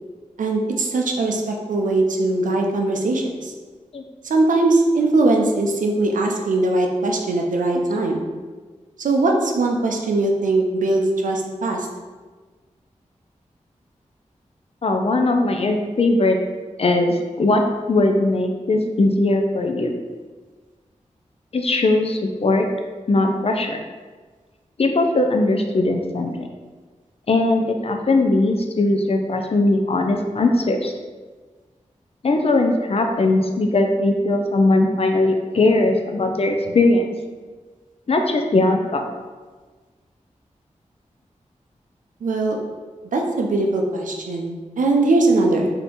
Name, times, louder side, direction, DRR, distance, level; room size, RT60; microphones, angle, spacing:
voice 1, 0.4-3.5 4.2-8.2 9.0-11.9 42.2-42.6 43.1-45.7, right 2 dB, 85° right, 1 dB, 0.4 m, -20 dB
voice 2, 14.8-16.4 16.8-17.6 17.9-20.0 21.5-22.7 23.1-23.8 24.8-26.5 27.3-30.9 32.2-37.1 38.1-39.1, left 2 dB, 50° left, 4 dB, 0.4 m, -19 dB
2.8 x 2.5 x 3.5 m, 1.4 s
cardioid pair, 45°, 13 cm